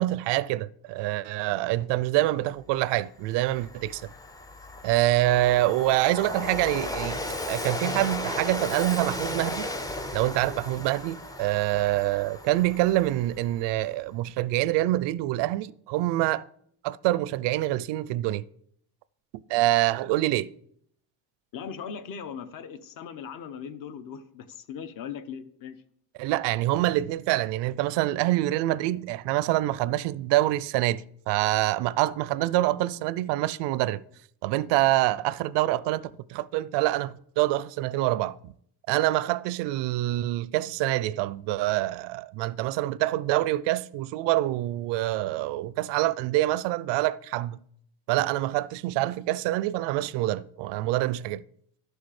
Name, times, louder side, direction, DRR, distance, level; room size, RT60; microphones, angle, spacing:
voice 1, 0.0-4.0 4.8-7.2 7.5-9.7 10.1-16.5 16.8-18.4 19.5-20.5 26.2-34.0 34.4-38.5 38.9-47.6 48.1-51.4, right 16 dB, 85° right, 0.5 m, -26 dB
Train, 2.7-2.8 3.2-13.6, left 1 dB, 10° left, 0.4 m, -35 dB
voice 2, 21.5-25.8, left 7 dB, 55° left, 0.8 m, -39 dB
12.5 x 6.3 x 4.9 m
cardioid pair, 170°, 41 cm